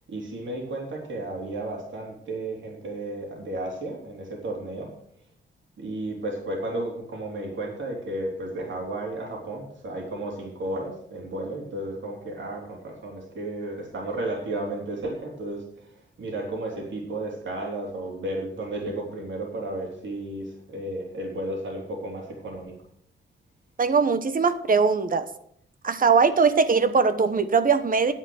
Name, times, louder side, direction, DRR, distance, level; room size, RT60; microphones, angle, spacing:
voice 1, 0.1-4.9 5.8-22.7, right 1 dB, 65° right, -1 dB, 3.7 m, -33 dB
voice 2, 23.8-25.3 25.8-28.1, right 5 dB, 40° right, 11 dB, 1.1 m, -21 dB
10.5 x 8.1 x 6.5 m, 0.68 s
cardioid pair, 95°, 21 cm